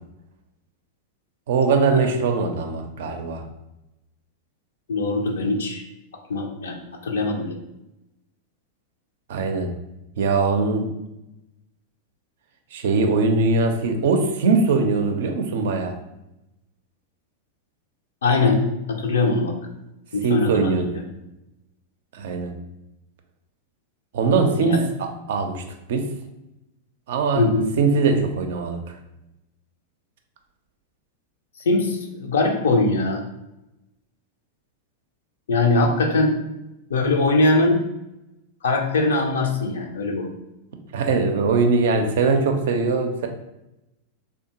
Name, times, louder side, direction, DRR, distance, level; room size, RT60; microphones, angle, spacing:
voice 1, 1.5-3.4 9.3-9.7 10.2-10.9 12.7-15.9 20.2-20.9 22.1-22.5 24.1-25.6 25.9-26.0 27.1-27.5 27.8-28.8 40.9-43.3, right 4 dB, 65° right, 5 dB, 0.4 m, -21 dB
voice 2, 4.9-5.8 6.3-7.6 18.2-18.6 18.9-19.5 20.1-21.0 24.6-24.8 27.4-27.7 31.7-33.2 35.5-36.4 36.9-37.8 38.6-40.3, left 2 dB, 75° left, 3 dB, 0.4 m, -21 dB
2.6 x 2.2 x 2.8 m, 0.92 s
hypercardioid pair, 95°, 0 cm